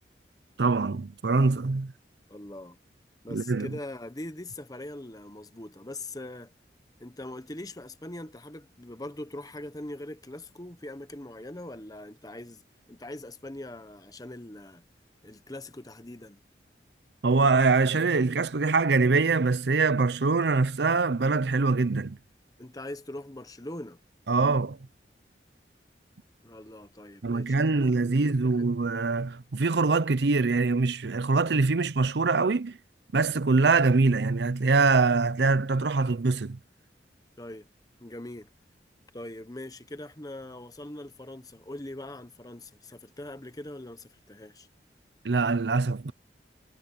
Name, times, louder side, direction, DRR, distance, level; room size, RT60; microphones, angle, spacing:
voice 1, 0.6-1.9 3.3-3.7 17.2-22.2 24.3-24.8 27.2-32.8 33.1-36.6 45.2-46.1, right 3 dB, 75° right, 0.7 m, -24 dB
voice 2, 2.3-2.8 3.2-6.5 7.0-12.6 12.9-14.8 15.2-16.4 22.6-24.0 26.4-28.8 37.4-37.7 38.0-38.5 39.1-44.7, left 1 dB, 20° left, 1.1 m, -42 dB
head